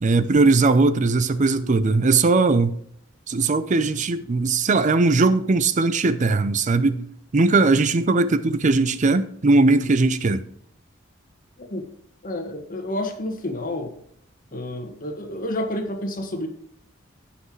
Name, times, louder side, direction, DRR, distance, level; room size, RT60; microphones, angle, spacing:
voice 1, 0.0-2.8 3.3-7.1 7.3-10.4, right 3 dB, 40° right, 0.5 m, -19 dB
voice 2, 12.2-13.9 14.5-16.5, left 1 dB, 45° left, 1.6 m, -29 dB
15.0 x 5.8 x 3.1 m
head